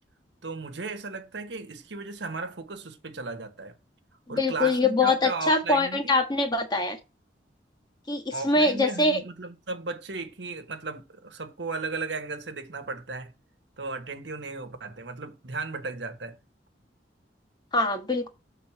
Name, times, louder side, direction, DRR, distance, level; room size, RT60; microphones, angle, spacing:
voice 1, 0.4-3.8 4.3-6.2 8.3-13.3 13.8-16.4, right 3 dB, 75° right, 1.2 m, -35 dB
voice 2, 4.3-7.0 8.1-9.2 17.7-18.3, left 2 dB, 25° left, 1.3 m, -23 dB
7.1 x 3.9 x 5.9 m
head